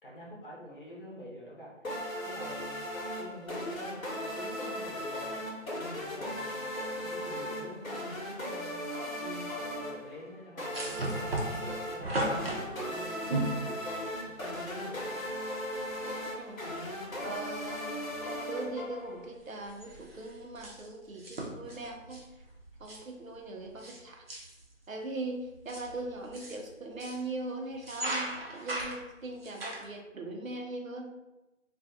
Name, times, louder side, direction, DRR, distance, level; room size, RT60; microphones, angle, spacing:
voice 1, 0.0-1.9 2.2-5.6 5.9-6.7 7.0-8.9 9.2-12.5 12.9-13.9 14.3-15.2, left 1 dB, 40° left, -5 dB, 0.8 m, -47 dB
sound 1, 1.8-19.3, equal, 90° left, 1.0 m, -37 dB
sound 2, 10.7-14.3 15.5-15.6 15.8-15.9 16.6-17.0 17.3-18.2 18.5-18.8 19.0-24.0 24.3-24.7 25.4-27.3 27.7-29.9, right 1 dB, 45° right, 0.6 m, -37 dB
voice 2, 17.2-18.1 18.4-22.4 22.8-24.2 24.9-31.1, right 2 dB, 90° right, 2 dB, 0.7 m, -40 dB
2.4 x 2.3 x 2.6 m, 1.0 s
figure-of-eight pair, 155°, 40 cm